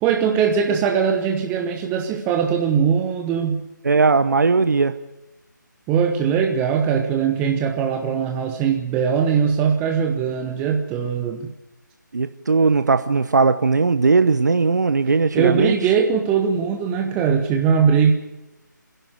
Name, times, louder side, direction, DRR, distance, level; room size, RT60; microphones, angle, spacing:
voice 1, 0.0-3.6 5.9-11.5 15.3-18.1, right 7 dB, 10° right, 4 dB, 0.9 m, -20 dB
voice 2, 3.8-5.0 12.1-15.7, right 4 dB, 60° right, 10 dB, 0.9 m, -18 dB
27.0 x 11.5 x 9.3 m, 0.97 s
figure-of-eight pair, 155°, 11 cm